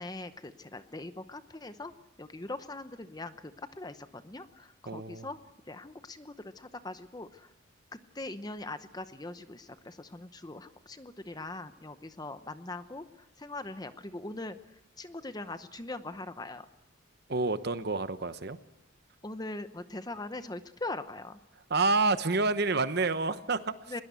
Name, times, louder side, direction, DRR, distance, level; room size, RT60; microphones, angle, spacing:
voice 1, 0.0-1.9 2.2-5.4 5.7-7.5 8.1-14.6 15.0-16.7 19.2-21.4 23.9-24.0, left 2 dB, 20° left, 11 dB, 0.8 m, -41 dB
voice 2, 4.9-5.3 17.3-18.6 21.7-23.7, right 3 dB, 50° right, 12 dB, 1.0 m, -28 dB
21.5 x 19.0 x 8.3 m, 0.96 s
head